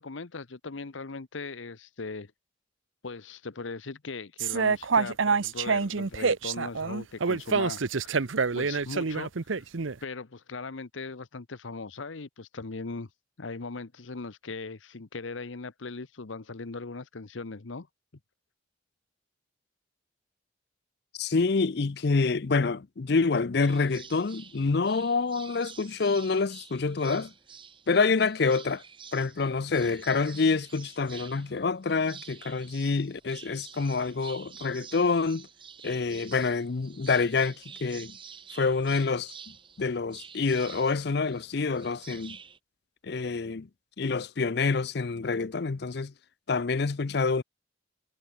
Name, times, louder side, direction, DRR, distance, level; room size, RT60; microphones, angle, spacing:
voice 1, 0.0-2.3 3.0-8.3 8.5-9.6 10.0-13.1 13.4-17.9, left 3 dB, 85° left, 0.9 m, -39 dB
sound 1, 4.4-9.9, right 5 dB, 90° right, 0.8 m, -27 dB
voice 2, 21.2-27.3 27.9-28.8 29.1-35.5 35.8-37.6 37.8-38.1 38.5-39.3 39.8-42.4 43.0-43.7 44.0-46.1 46.5-47.4, left 4 dB, 55° left, 0.6 m, -27 dB
sound 2, 23.7-42.6, right 7 dB, 25° right, 1.4 m, -49 dB
head